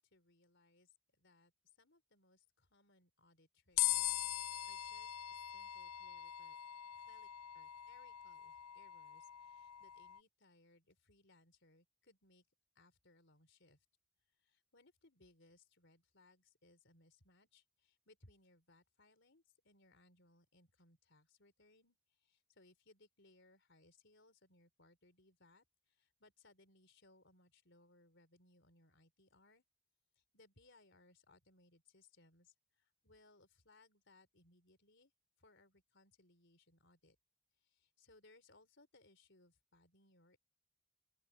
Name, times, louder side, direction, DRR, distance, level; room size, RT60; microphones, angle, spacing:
voice 1, 0.1-1.5 1.8-6.6 7.0-12.5 12.7-13.8 14.4-29.6 30.2-35.1 35.4-37.2 37.6-40.4, left 2 dB, 55° left, 4.6 m, -68 dB
sound 1, 3.8-10.2, left 15 dB, 85° left, 0.4 m, -41 dB
open air
head